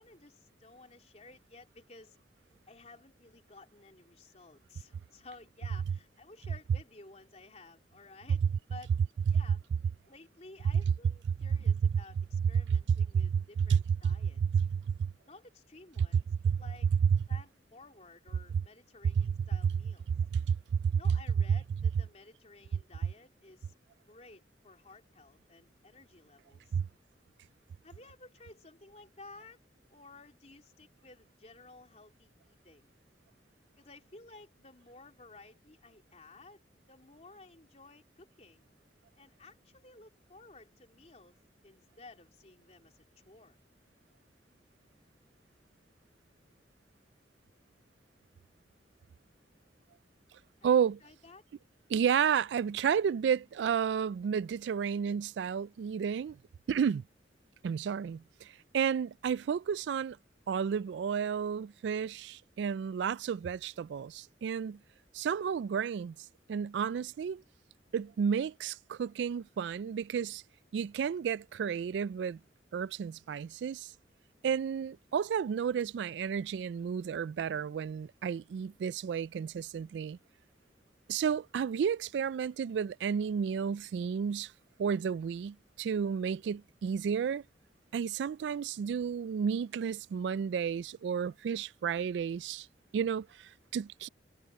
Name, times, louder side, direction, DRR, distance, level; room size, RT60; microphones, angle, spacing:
voice 1, 0.0-2.2 2.7-8.9 9.3-9.6 10.1-14.4 15.3-16.9 17.3-20.1 20.9-23.7 24.1-26.8 27.8-29.6 29.9-32.9 33.8-36.6 36.9-38.7 39.2-41.4 41.6-43.6 50.6-51.4, left 3 dB, 40° left, 3.3 m, -55 dB
voice 2, 13.3-14.1 14.4-15.1 16.4-16.6 17.1-17.2 19.2-19.3 19.6-19.7 20.1-21.1 21.5-21.6 26.7-26.9 50.6-51.0 51.9-56.4 56.7-57.0 57.6-60.2 60.5-64.8 65.1-66.1 66.5-67.4 67.9-70.4 70.7-72.4 72.7-73.9 74.4-80.2 81.1-84.5 84.8-87.4 87.9-92.7 92.9-94.1, right 7 dB, 80° right, 0.3 m, -31 dB
head